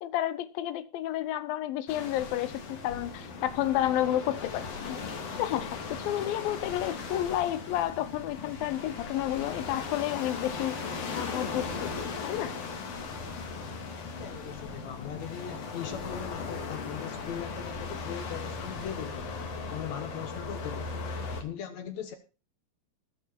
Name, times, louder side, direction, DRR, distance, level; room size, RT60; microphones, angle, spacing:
voice 1, 0.0-5.0 5.4-10.8 11.1-12.6, left 13 dB, 85° left, 2.5 m, -31 dB
sound 1, 1.9-21.4, left 4 dB, 50° left, 2.5 m, -38 dB
voice 2, 14.1-20.9 21.2-22.2, left 9 dB, 65° left, 1.9 m, -40 dB
18.5 x 6.7 x 4.4 m
omnidirectional pair, 4.1 m